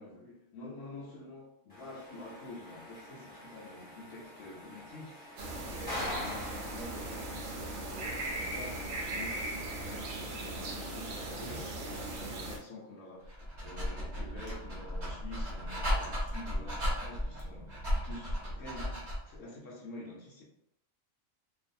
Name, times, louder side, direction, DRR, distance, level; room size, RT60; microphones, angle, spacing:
voice 1, 0.0-20.4, left 2 dB, 75° left, -3 dB, 1.0 m, -48 dB
sound 1, 1.7-8.8, left 1 dB, 5° left, 1.0 m, -45 dB
sound 2, 5.4-12.6, right 2 dB, 70° right, 0.9 m, -38 dB
Dog, 13.3-19.4, equal, 40° right, 0.8 m, -35 dB
2.5 x 2.5 x 2.5 m, 0.77 s
omnidirectional pair, 1.4 m